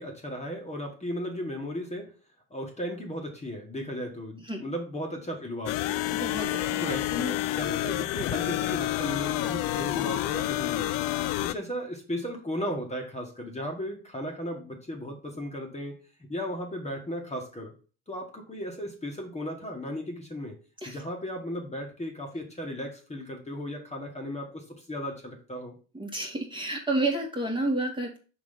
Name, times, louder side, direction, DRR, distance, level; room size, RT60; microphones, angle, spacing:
voice 1, 0.0-2.1 2.5-6.0 6.8-10.9 11.4-15.9 16.3-17.7 18.1-20.5 20.9-25.7, equal, 15° left, 1 dB, 2.0 m, -35 dB
sound 1, 5.7-11.5, left 16 dB, 50° left, 0.5 m, -29 dB
voice 2, 6.2-6.8 20.8-21.0 25.9-28.2, right 2 dB, 10° right, -1 dB, 2.0 m, -30 dB
5.8 x 3.8 x 5.8 m, 0.36 s
hypercardioid pair, 65°, 44 cm